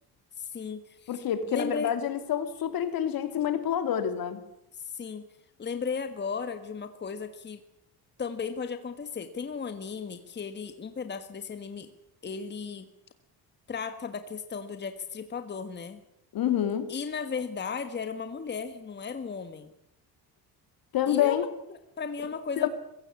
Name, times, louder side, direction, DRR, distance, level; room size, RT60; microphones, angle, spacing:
voice 1, 0.4-1.9 4.7-5.2 5.6-7.6 8.2-11.9 12.2-12.9 13.7-16.0 16.9-19.7 21.1-22.7, left 5 dB, 25° left, 9 dB, 1.6 m, -35 dB
voice 2, 1.1-4.4 16.3-16.9 20.9-21.4 22.6-22.7, left 10 dB, 65° left, 9 dB, 3.1 m, -27 dB
23.0 x 16.5 x 9.8 m, 0.80 s
cardioid pair, 130°, 38 cm